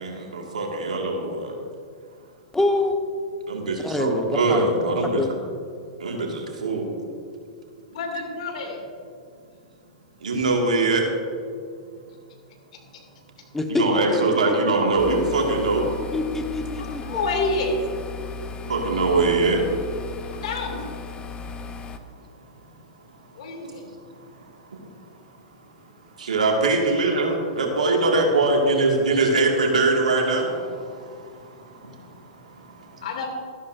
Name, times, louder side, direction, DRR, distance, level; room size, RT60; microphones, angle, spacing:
voice 1, 0.0-1.6 3.5-5.2 6.0-6.9 10.2-11.0 13.8-15.8 18.6-19.6 23.6-23.7 24.7-24.8 26.2-33.1, right 3 dB, 80° right, 1 dB, 1.9 m, -23 dB
voice 2, 2.5-3.0 3.8-4.6 5.0-5.3 13.5-13.9 14.1-14.2 14.5-14.6 14.8-14.9 16.0-17.2, left 2 dB, 10° left, 4 dB, 1.1 m, -25 dB
voice 3, 7.9-8.8 16.8-17.8 20.4-20.9 23.4-23.8 33.0-33.3, left 3 dB, 65° left, 2 dB, 2.4 m, -28 dB
sound 1, 15.0-22.0, left 5 dB, 25° left, 0.7 m, -36 dB
13.5 x 12.0 x 2.6 m, 2.2 s
hypercardioid pair, 110°, 4 cm